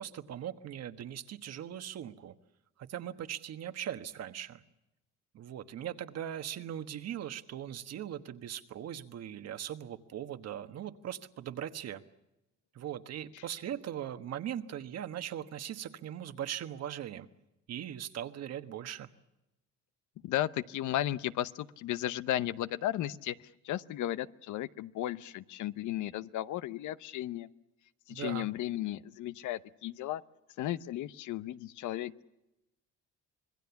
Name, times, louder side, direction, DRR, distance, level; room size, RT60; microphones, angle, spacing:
voice 1, 0.0-2.3 2.8-4.6 5.3-12.0 12.7-17.3 17.7-19.1 28.1-28.5, right 10 dB, 55° right, 10 dB, 1.4 m, -40 dB
voice 2, 20.2-27.5 28.1-30.2 30.6-32.2, left 13 dB, 70° left, 15 dB, 0.9 m, -35 dB
26.0 x 21.5 x 7.1 m, 0.94 s
cardioid pair, 125°, 31 cm